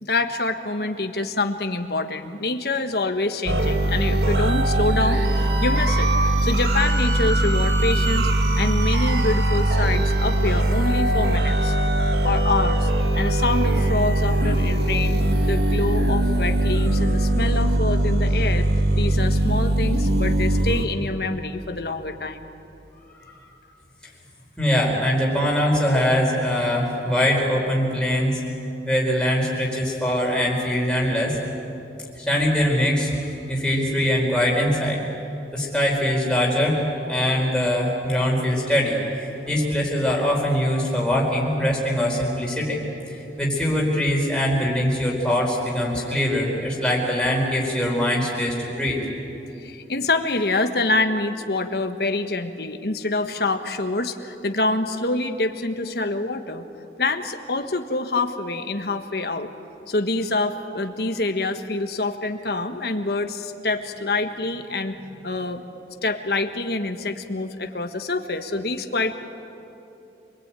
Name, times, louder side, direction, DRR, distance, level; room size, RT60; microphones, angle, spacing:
voice 1, 0.0-8.3 8.5-11.7 12.2-18.7 19.0-22.5 49.6-56.6 57.0-59.5 59.9-65.6 66.0-69.1, left 2 dB, 60° left, 6 dB, 1.4 m, -26 dB
sound 1, 3.5-20.9, right 1 dB, 65° right, 1.8 m, -21 dB
voice 2, 24.6-28.4 28.9-31.4 32.2-35.0 35.5-39.0 39.5-42.8 43.4-49.0, equal, 5° left, -3 dB, 4.6 m, -22 dB
27.0 x 20.5 x 9.1 m, 2.9 s
head